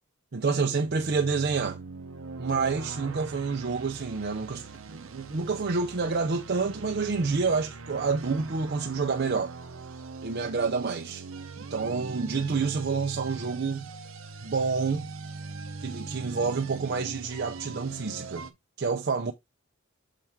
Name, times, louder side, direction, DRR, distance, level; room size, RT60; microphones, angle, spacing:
voice 1, 0.3-1.8 2.4-9.5 10.2-11.2 11.6-13.9 14.4-15.1 15.8-18.5 18.8-19.3, right 4 dB, 50° right, 0.6 m, -28 dB
sound 1, 0.7-18.5, right 4 dB, 90° right, 0.9 m, -41 dB
6.8 x 4.5 x 3.5 m
head